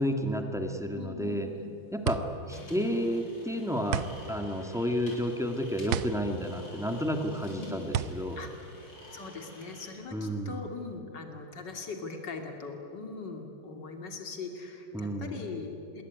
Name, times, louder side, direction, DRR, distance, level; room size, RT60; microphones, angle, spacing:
voice 1, 0.0-1.5 1.9-2.2 2.5-8.4 10.1-10.6 14.9-15.4, equal, ahead, 4 dB, 1.8 m, -31 dB
voice 2, 1.0-1.7 2.5-2.7 7.5-7.8 8.4-8.5 9.1-16.0, left 4 dB, 55° left, 4 dB, 3.2 m, -41 dB
sound 1, 1.2-9.6, right 8 dB, 85° right, 1.7 m, -35 dB
sound 2, 2.5-9.9, left 1 dB, 85° left, 6.6 m, -51 dB
26.5 x 21.5 x 9.6 m, 2.8 s
omnidirectional pair, 2.3 m